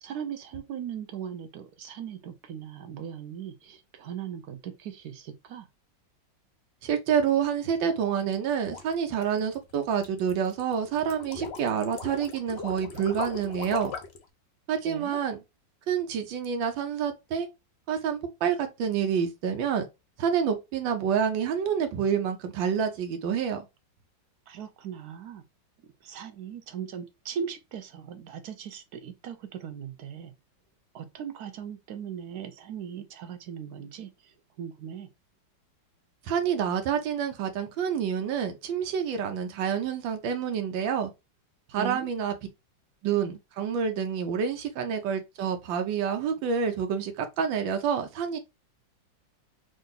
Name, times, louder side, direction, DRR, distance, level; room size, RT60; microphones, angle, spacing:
voice 1, 0.0-5.7 14.8-15.2 24.5-25.4 26.0-30.3 30.9-35.1 41.7-42.1, right 8 dB, 70° right, 1.0 m, -39 dB
voice 2, 6.8-13.9 14.7-15.4 15.9-17.5 17.9-19.9 20.2-23.6 36.3-41.1 41.7-42.3 43.0-48.4, right 7 dB, 90° right, 1.5 m, -28 dB
sound 1, 8.2-14.2, left 5 dB, 55° left, 0.7 m, -39 dB
3.8 x 2.6 x 3.7 m
omnidirectional pair, 2.0 m